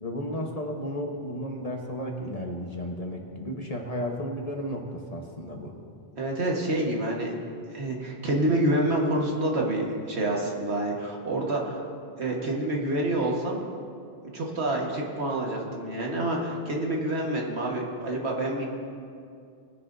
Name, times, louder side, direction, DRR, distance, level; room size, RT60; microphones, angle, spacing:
voice 1, 0.0-5.7, equal, 35° left, 1 dB, 1.1 m, -33 dB
voice 2, 6.2-7.4 7.7-11.8 12.2-13.6 14.3-18.6, right 1 dB, 75° right, -1 dB, 1.8 m, -27 dB
20.0 x 10.0 x 2.7 m, 2.4 s
omnidirectional pair, 1.1 m